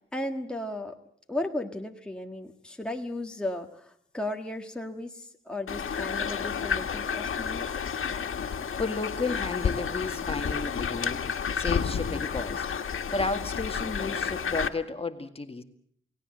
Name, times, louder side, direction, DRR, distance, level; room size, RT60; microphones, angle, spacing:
voice 1, 0.1-1.0 1.3-7.7, left 1 dB, 5° left, 3 dB, 1.6 m, -35 dB
sound 1, 5.7-14.7, left 6 dB, 85° left, 1.7 m, -31 dB
voice 2, 8.7-11.2 11.6-12.7 13.1-15.6, left 3 dB, 30° left, 6 dB, 1.9 m, -32 dB
29.0 x 18.5 x 7.7 m, 0.66 s
wide cardioid pair, 120°, 20 cm